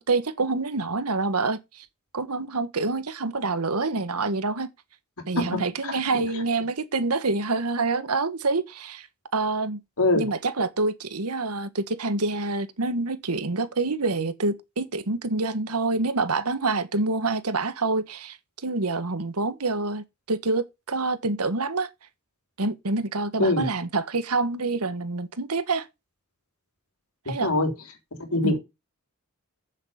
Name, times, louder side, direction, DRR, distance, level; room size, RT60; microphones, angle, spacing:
voice 1, 0.0-1.8 2.1-4.7 5.3-9.1 9.3-9.8 10.1-18.4 18.6-21.9 22.6-25.9 27.3-27.5 28.4-28.6, right 3 dB, 85° right, 1.4 m, -27 dB
voice 2, 5.4-6.0 10.0-10.2 23.4-23.7 27.4-27.7 28.2-28.6, left 2 dB, 75° left, 3.6 m, -23 dB
8.7 x 7.4 x 5.2 m
head